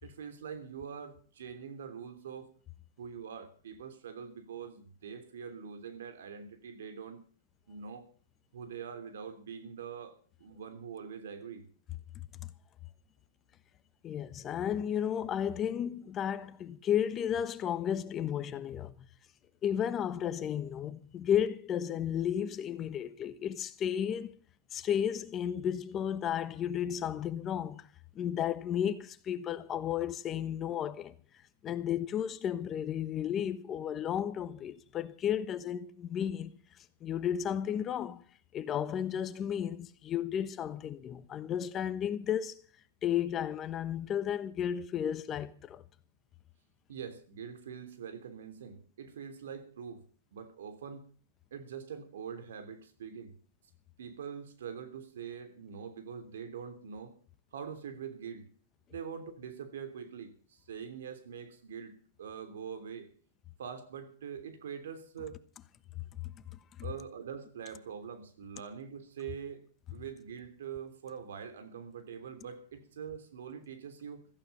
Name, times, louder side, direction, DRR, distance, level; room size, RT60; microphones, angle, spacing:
voice 1, 0.0-2.5 3.0-7.2 7.7-8.1 8.5-11.7 46.9-50.1 50.3-51.1 51.5-53.4 54.0-57.2 57.5-58.5 58.9-63.1 63.6-65.4 66.8-69.6 69.9-74.3, right 7 dB, 85° right, 3.2 m, -44 dB
voice 2, 14.0-19.1 19.6-24.3 24.7-27.9 28.1-31.1 31.6-36.5 37.0-38.2 38.5-42.6 43.0-45.8, left 9 dB, 25° left, 1.1 m, -33 dB
16.0 x 14.5 x 5.5 m
hypercardioid pair, 140°, 0 cm